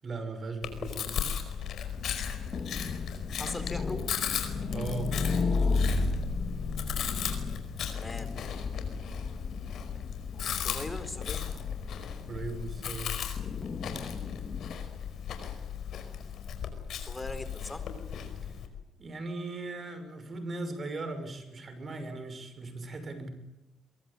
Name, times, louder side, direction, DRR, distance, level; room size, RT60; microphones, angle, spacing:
voice 1, 0.0-1.3 4.7-5.1 12.3-13.2 18.4-18.5 19.0-23.3, right 3 dB, 40° right, 9 dB, 6.3 m, -38 dB
Chewing mastication, 0.6-18.7, left 8 dB, 70° left, 5.0 m, -36 dB
sound 1, 2.0-14.8, left 3 dB, 45° left, 3.1 m, -34 dB
voice 2, 3.3-4.0 8.0-8.4 10.6-11.5 17.1-17.8, left 2 dB, 15° left, 11 dB, 4.6 m, -39 dB
24.0 x 22.5 x 8.7 m, 0.95 s
cardioid pair, 90°, 0 cm